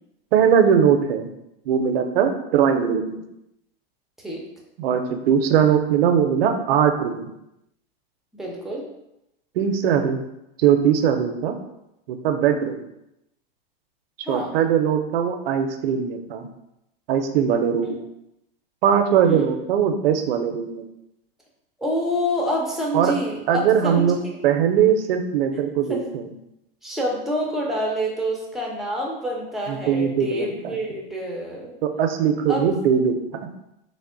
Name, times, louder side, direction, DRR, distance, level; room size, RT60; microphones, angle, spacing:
voice 1, 0.3-1.3 1.7-3.2 4.8-7.3 9.6-10.2 10.6-11.6 12.1-12.8 14.3-16.5 17.1-18.0 18.8-20.8 22.9-23.1 23.5-26.3 29.7-30.8 31.8-33.5, right 8 dB, 75° right, 6 dB, 0.6 m, -20 dB
voice 2, 8.4-8.8 14.3-14.5 17.8-17.9 19.2-19.5 21.8-23.4 23.8-24.5 25.9-26.0 26.8-31.8 32.5-32.6, equal, ahead, -3 dB, 0.5 m, -27 dB
3.3 x 2.1 x 3.7 m, 0.86 s
supercardioid pair, 135°, 30 cm